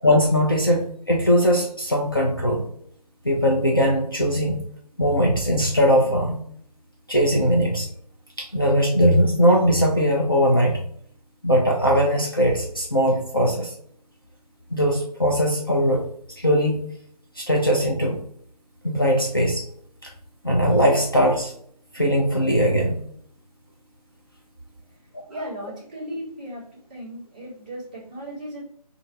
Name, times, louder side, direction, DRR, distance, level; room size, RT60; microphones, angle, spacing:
voice 1, 0.0-2.6 3.2-4.6 5.0-6.4 7.1-7.9 8.4-10.8 11.4-13.7 14.7-16.1 16.4-16.8 17.4-18.2 18.8-19.6 20.0-20.1 20.4-21.5 21.9-23.0 25.1-25.2, equal, 35° left, -2 dB, 0.4 m, -20 dB
voice 2, 25.3-26.6 26.9-28.6, equal, 15° right, -9 dB, 0.8 m, -36 dB
2.4 x 2.2 x 4.0 m, 0.63 s
figure-of-eight pair, 165°, 20 cm